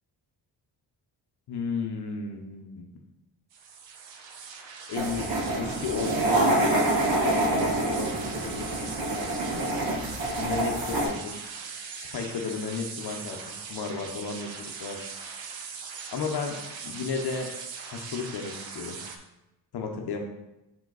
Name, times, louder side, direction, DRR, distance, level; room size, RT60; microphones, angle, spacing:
voice 1, 1.5-3.0 4.9-6.6 7.3-8.6 10.4-11.5 12.0-15.1 16.1-17.5 17.9-19.0 19.7-20.2, left 5 dB, 60° left, 2 dB, 0.9 m, -34 dB
sound 1, 3.5-19.2, right 5 dB, 80° right, 1.0 m, -40 dB
sound 2, 5.0-11.1, right 1 dB, 50° right, 1.6 m, -26 dB
5.6 x 5.1 x 4.0 m, 0.93 s
cardioid pair, 125°, 44 cm